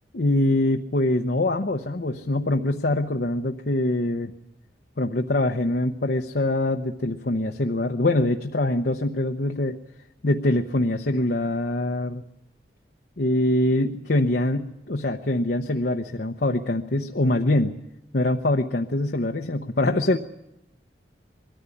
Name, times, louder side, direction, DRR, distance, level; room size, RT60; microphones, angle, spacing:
voice 1, 0.1-4.3 5.0-9.8 10.2-12.2 13.2-17.7 18.1-20.2, left 1 dB, 60° left, 4 dB, 0.8 m, -24 dB
22.0 x 14.0 x 9.9 m, 0.88 s
head